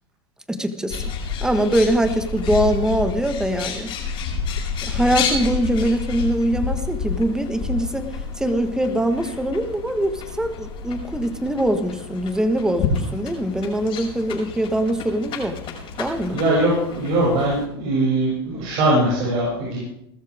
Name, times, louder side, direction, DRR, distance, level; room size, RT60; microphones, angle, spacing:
voice 1, 0.5-1.1 1.4-3.9 4.8-8.1 8.4-15.6 16.0-16.4, right 1 dB, 5° right, 8 dB, 1.6 m, -22 dB
Bird, 0.9-17.7, left 5 dB, 40° left, 6.2 m, -30 dB
voice 2, 16.3-19.8, right 1 dB, 50° right, -6 dB, 7.5 m, -21 dB
20.0 x 13.5 x 3.7 m, 0.81 s
hypercardioid pair, 110°, 13 cm